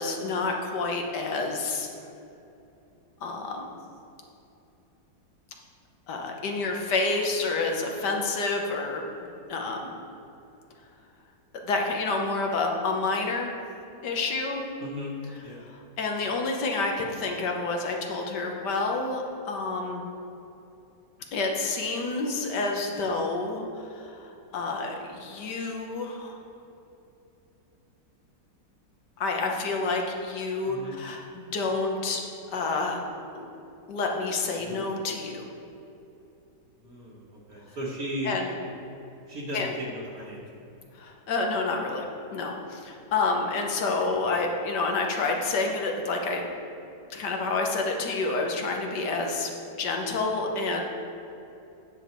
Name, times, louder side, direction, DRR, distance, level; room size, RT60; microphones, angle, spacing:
voice 1, 0.0-1.9 3.2-3.7 6.1-9.0 9.5-9.9 11.6-13.5 14.0-14.6 15.7-20.0 21.3-26.4 29.2-32.2 32.5-33.0 33.3-33.5 33.9-35.4 38.2-38.6 39.5-39.7 40.9-46.4 47.1-49.5 49.8-50.8, left 3 dB, 70° left, 1 dB, 1.6 m, -29 dB
voice 2, 14.8-15.1 15.4-15.6 30.6-31.0 34.6-34.8 36.8-38.3 39.3-40.6 44.1-44.2, equal, 55° right, -4 dB, 1.6 m, -36 dB
9.5 x 7.3 x 4.4 m, 2.8 s
omnidirectional pair, 2.0 m